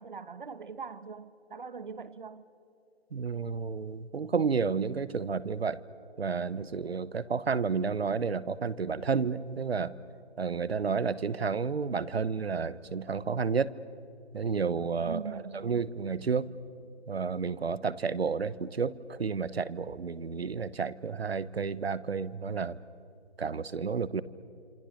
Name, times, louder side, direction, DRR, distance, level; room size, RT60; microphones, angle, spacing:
voice 1, 0.0-2.4 15.0-15.7, right 5 dB, 50° right, 1.2 m, -41 dB
voice 2, 3.1-5.8 6.2-9.9 10.4-13.7 14.3-16.5 17.1-22.8 23.4-24.2, right 5 dB, 70° right, 1.1 m, -31 dB
27.5 x 26.0 x 6.5 m
figure-of-eight pair, 165°, 32 cm